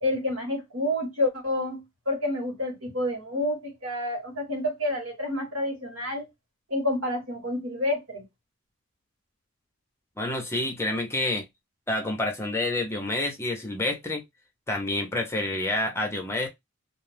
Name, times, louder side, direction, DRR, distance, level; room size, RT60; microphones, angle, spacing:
voice 1, 0.0-6.3 6.7-8.3, left 1 dB, 70° right, 1.4 m, -29 dB
voice 2, 10.2-11.5 11.9-14.2 14.7-16.5, left 2 dB, 10° left, 0.6 m, -28 dB
2.4 x 2.3 x 3.3 m
head